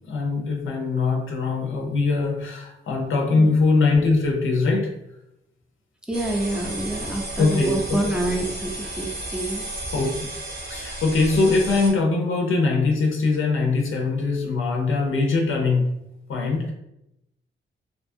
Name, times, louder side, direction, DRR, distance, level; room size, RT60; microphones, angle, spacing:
voice 1, 0.1-4.9 7.4-8.0 9.9-10.1 10.7-15.8 16.3-16.7, left 3 dB, 75° left, 0 dB, 0.5 m, -22 dB
voice 2, 6.1-9.7, right 1 dB, 5° right, -1 dB, 0.5 m, -27 dB
sound 1, 6.1-11.9, right 2 dB, 50° right, 0.8 m, -33 dB
2.6 x 2.3 x 2.6 m, 0.87 s
wide cardioid pair, 110°, 21 cm